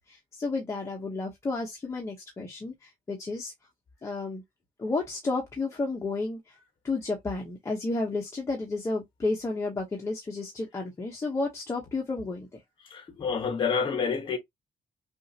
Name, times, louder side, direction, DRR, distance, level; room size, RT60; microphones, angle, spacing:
voice 1, 0.1-3.5 4.0-4.4 4.8-6.6 6.8-12.6 13.1-13.2, left 3 dB, 20° left, 0.9 m, -32 dB
voice 2, 12.8-14.4, left 6 dB, 35° left, 1.3 m, -28 dB
6.2 x 2.5 x 2.8 m
cardioid pair, 180°, 14 cm